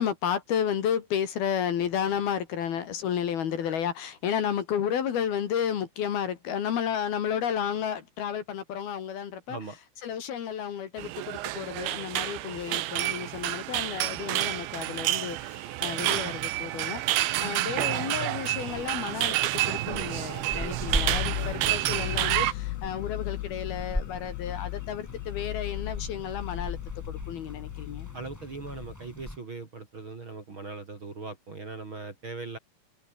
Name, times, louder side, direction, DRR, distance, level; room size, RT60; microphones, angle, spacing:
voice 1, 0.0-9.6 10.0-17.0 17.4-19.4 19.7-26.8 27.1-28.1, left 8 dB, 60° left, 3.7 m, -32 dB
voice 2, 9.5-9.8 28.1-32.6, right 3 dB, 30° right, 2.9 m, -39 dB
sound 1, 11.0-22.5, right 16 dB, 80° right, 3.5 m, -29 dB
sound 2, 18.6-29.4, left 1 dB, 5° left, 2.4 m, -39 dB
sound 3, 20.9-29.0, left 19 dB, 85° left, 2.9 m, -36 dB
omnidirectional pair, 5.3 m